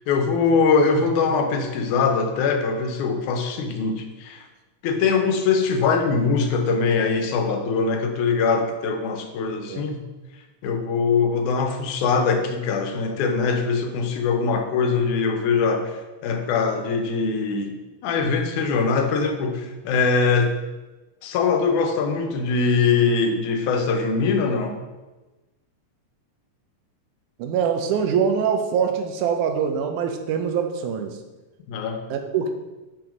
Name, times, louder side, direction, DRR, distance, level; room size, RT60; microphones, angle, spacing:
voice 1, 0.1-4.5 4.8-10.0 10.6-17.8 18.0-20.6 21.2-24.8 31.7-32.0, left 4 dB, 85° left, 5 dB, 2.3 m, -22 dB
voice 2, 27.4-31.2 32.1-32.5, right 7 dB, 85° right, 5 dB, 2.3 m, -23 dB
6.3 x 6.1 x 5.1 m, 1.1 s
omnidirectional pair, 3.4 m